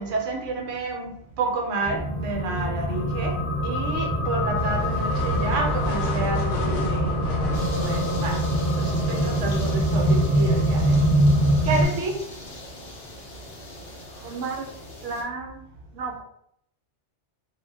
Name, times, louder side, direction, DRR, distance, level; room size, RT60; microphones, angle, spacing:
voice 1, 0.0-3.3 3.6-7.1 7.8-8.4 8.8-11.1 11.6-12.2, right 2 dB, 90° right, 2 dB, 1.0 m, -29 dB
sound 1, 1.8-11.8, equal, 40° left, 0.5 m, -24 dB
sound 2, 4.5-12.5, equal, 85° left, 1.0 m, -33 dB
sound 3, 7.5-15.2, left 1 dB, 60° left, 0.9 m, -39 dB
voice 2, 14.2-14.7 15.0-15.6 15.9-16.2, right 4 dB, 65° right, 1 dB, 0.8 m, -32 dB
2.4 x 2.1 x 3.2 m, 0.71 s
omnidirectional pair, 1.2 m